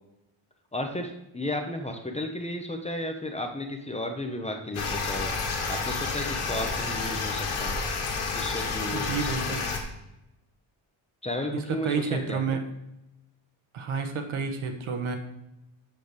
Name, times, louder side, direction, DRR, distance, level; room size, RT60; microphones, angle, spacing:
voice 1, 0.7-5.3 5.7-7.8 8.3-9.6 11.2-12.6, left 1 dB, 15° left, 3 dB, 0.7 m, -34 dB
sound 1, 4.7-9.8, left 4 dB, 90° left, 1.9 m, -30 dB
voice 2, 8.9-9.7 11.7-12.6 13.7-15.2, right 5 dB, 80° right, 5 dB, 1.3 m, -30 dB
7.5 x 6.5 x 5.2 m, 0.90 s
wide cardioid pair, 180°, 49 cm